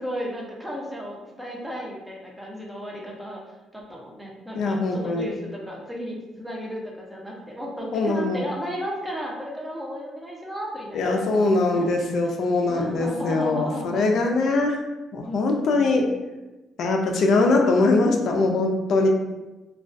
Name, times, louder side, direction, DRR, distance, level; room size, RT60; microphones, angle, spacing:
voice 1, 0.0-3.4 3.7-11.9 12.2-12.3 12.7-14.1 15.2-16.1, equal, 10° right, -2 dB, 0.6 m, -34 dB
voice 2, 4.6-5.3 7.9-8.4 10.9-14.8 15.1-16.1 16.8-19.1, left 3 dB, 65° left, 2 dB, 0.3 m, -22 dB
2.2 x 2.2 x 2.5 m, 1.1 s
cardioid pair, 90°, 0 cm